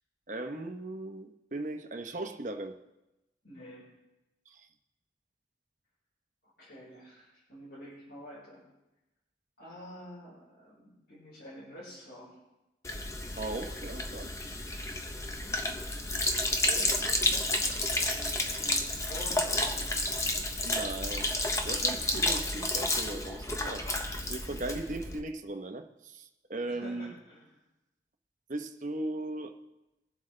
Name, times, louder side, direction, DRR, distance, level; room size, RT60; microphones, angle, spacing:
voice 1, 0.3-2.8 4.5-4.7 13.4-14.3 20.6-21.3 21.6-23.9 24.2-27.1 28.5-29.6, right 2 dB, 45° right, 6 dB, 0.9 m, -38 dB
voice 2, 3.4-3.9 6.6-8.6 9.6-12.4 15.3-15.8 16.6-19.7 22.0-22.2 26.6-27.6, equal, 75° left, -9 dB, 4.8 m, -48 dB
Sink (filling or washing), 12.8-25.2, left 2 dB, 15° left, 0.8 m, -31 dB
22.5 x 7.7 x 3.3 m, 0.97 s
head